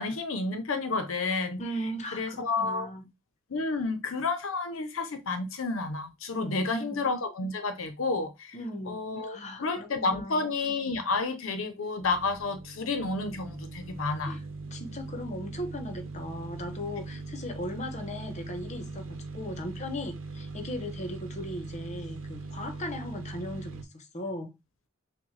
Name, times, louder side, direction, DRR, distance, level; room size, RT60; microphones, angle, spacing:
voice 1, 0.0-1.6 2.1-2.9 3.5-8.6 8.9-14.4, left 3 dB, 80° left, 0.6 m, -30 dB
voice 2, 1.6-3.1 6.4-7.0 8.5-10.5 14.2-14.4 14.7-24.5, left 1 dB, 35° left, 0.8 m, -38 dB
sound 1, 12.0-23.8, right 3 dB, 70° right, 0.8 m, -41 dB
6.1 x 2.1 x 3.2 m
head